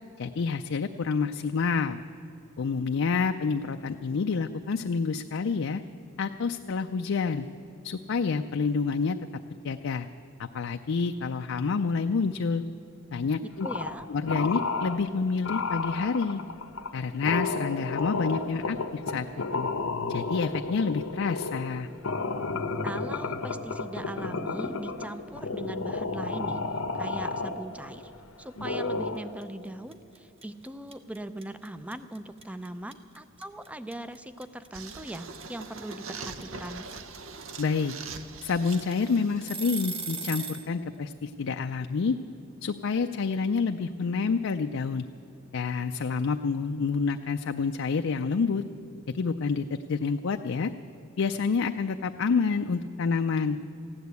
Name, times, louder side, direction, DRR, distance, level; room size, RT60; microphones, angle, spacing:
voice 1, 0.2-2.0 2.6-5.8 6.2-7.5 7.8-9.2 9.6-10.1 10.4-12.6 13.1-13.7 14.1-16.4 16.9-19.3 19.5-19.7 20.1-21.9 37.6-37.9 38.4-42.2 42.6-45.0 45.5-48.6 49.1-50.7 51.2-53.6, left 5 dB, 65° left, 6 dB, 0.4 m, -28 dB
voice 2, 13.4-14.1 22.8-26.6 26.9-28.1 28.4-36.9, right 1 dB, 5° right, 12 dB, 0.5 m, -40 dB
sound 1, 13.6-14.0 14.3-15.0 15.4-28.1 28.6-29.3, left 3 dB, 85° left, 0.9 m, -32 dB
sound 2, 29.4-29.7 29.9-40.7, right 5 dB, 30° right, 1.1 m, -38 dB
sound 3, 34.7-40.4, right 4 dB, 70° right, 0.8 m, -43 dB
15.5 x 10.5 x 8.1 m, 2.8 s
head